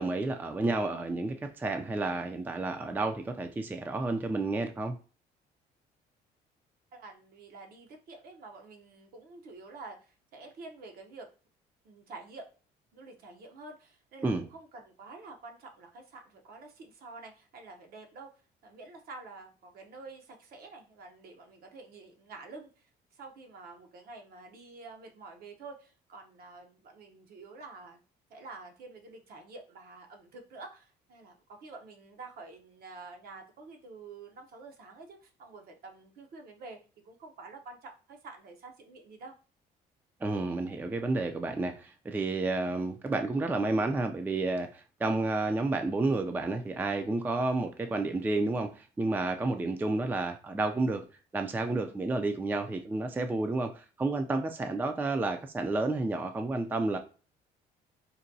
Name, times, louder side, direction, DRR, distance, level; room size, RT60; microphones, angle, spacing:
voice 1, 0.0-4.9 14.2-14.4 40.2-51.1 51.3-57.0, right 2 dB, 10° right, 7 dB, 0.3 m, -30 dB
voice 2, 6.9-11.3 11.8-12.5 12.9-18.3 18.6-28.0 28.3-39.3, right 3 dB, 60° right, 4 dB, 0.8 m, -48 dB
3.9 x 2.2 x 2.6 m, 0.36 s
cardioid pair, 110°, 17 cm